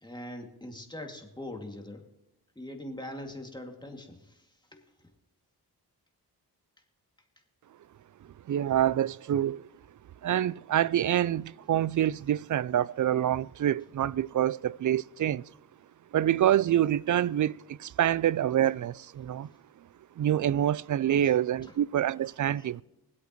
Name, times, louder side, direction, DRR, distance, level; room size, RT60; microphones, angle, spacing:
voice 1, 0.0-2.0 2.6-5.1 21.2-21.8 22.2-22.7, left 1 dB, 10° left, 2.3 m, -43 dB
voice 2, 8.5-9.7 10.2-15.4 16.1-19.5 20.2-22.8, right 11 dB, 50° right, 0.4 m, -26 dB
23.5 x 8.4 x 3.1 m
cardioid pair, 65°, 40 cm